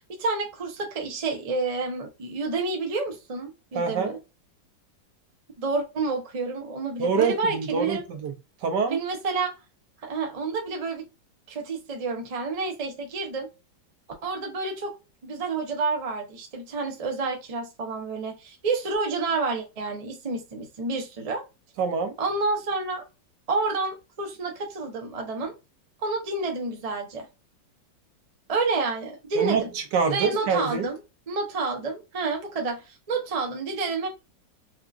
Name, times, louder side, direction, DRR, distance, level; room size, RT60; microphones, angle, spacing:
voice 1, 0.1-4.2 5.6-8.0 8.9-9.5 10.0-11.1 11.5-13.5 14.2-14.9 15.2-21.5 22.2-23.0 23.5-25.5 26.0-27.3 28.5-29.7 30.0-31.0 31.3-34.1, right 3 dB, 50° right, 0.4 m, -29 dB
voice 2, 3.7-4.2 7.0-8.3 8.6-9.0 21.8-22.1 29.3-30.9, right 5 dB, 75° right, 1.4 m, -26 dB
4.8 x 2.3 x 2.4 m
omnidirectional pair, 2.0 m